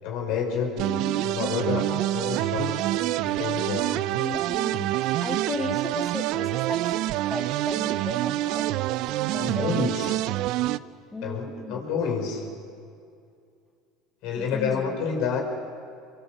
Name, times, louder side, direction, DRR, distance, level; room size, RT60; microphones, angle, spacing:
voice 1, 0.0-0.9 1.2-2.9 3.2-3.9 9.4-10.2 11.2-12.5 14.2-15.4, left 6 dB, 65° left, 2 dB, 5.9 m, -29 dB
voice 2, 0.8-1.3 4.2-7.0 7.3-8.7 9.3-9.7 11.1-11.8 14.4-15.0, left 2 dB, 10° left, 4 dB, 2.3 m, -35 dB
sound 1, 0.8-10.8, right 15 dB, 65° right, 0.6 m, -26 dB
25.5 x 24.0 x 7.9 m, 2.4 s
hypercardioid pair, 85°, 0 cm